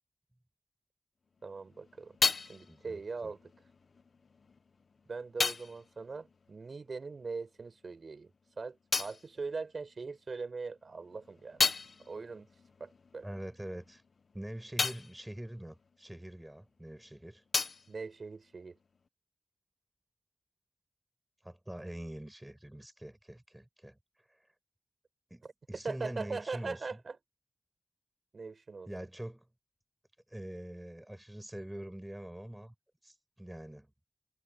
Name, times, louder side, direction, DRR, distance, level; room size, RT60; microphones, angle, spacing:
sound 1, 1.4-7.4 7.6-10.3 10.8-16.8 17.0-19.1, left 4 dB, 70° left, 1.1 m, -37 dB
voice 1, 1.4-3.4 5.1-11.7 12.0-12.5 12.8-13.3 17.9-18.8 25.4-25.5 25.8-27.2 28.3-28.9, right 4 dB, 65° right, 7.4 m, -41 dB
voice 2, 2.7-3.3 13.2-14.0 14.3-17.4 21.4-24.0 25.3-26.8 28.9-29.4 30.3-32.7 33.0-33.9, right 1 dB, 15° right, 6.6 m, -44 dB
cardioid pair, 40°, 0 cm